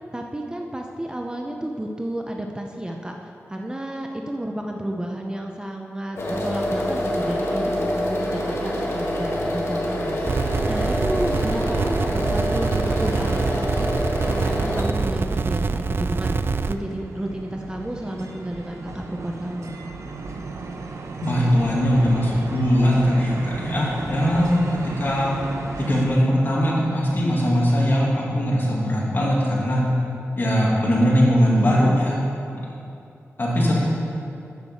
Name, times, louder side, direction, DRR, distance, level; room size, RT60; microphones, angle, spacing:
voice 1, 0.1-10.4 10.6-13.9 14.2-19.7 31.3-32.0, right 1 dB, 15° right, 2 dB, 0.7 m, -31 dB
sound 1, 6.2-14.8, equal, 60° left, 1.7 m, -26 dB
sound 2, 10.3-16.8, right 4 dB, 50° right, 0.3 m, -25 dB
sound 3, 11.4-26.0, right 3 dB, 80° right, 0.8 m, -36 dB
voice 2, 21.2-25.3 25.8-29.9 30.3-32.2 32.5-32.6 33.4-33.8, equal, 45° left, -5 dB, 2.5 m, -20 dB
9.3 x 6.7 x 7.0 m, 2.7 s
wide cardioid pair, 95°, 5 cm